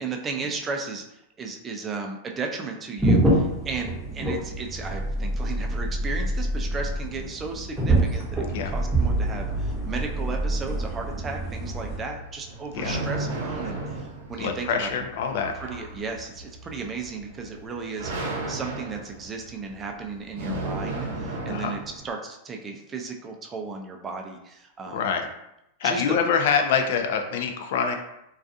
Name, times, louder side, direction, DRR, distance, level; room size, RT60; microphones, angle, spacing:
voice 1, 0.0-14.9 15.6-25.1 25.8-26.0, right 4 dB, 20° right, 2 dB, 0.4 m, -35 dB
sound 1, 3.0-12.0, right 1 dB, 5° right, 0.8 m, -26 dB
sound 2, 11.7-22.1, right 2 dB, 70° right, 0.7 m, -35 dB
voice 2, 14.4-15.5 21.5-21.8 24.9-25.3 25.8-27.9, left 6 dB, 65° left, 5 dB, 0.4 m, -25 dB
2.4 x 2.3 x 2.6 m, 0.82 s
hypercardioid pair, 125°, 0 cm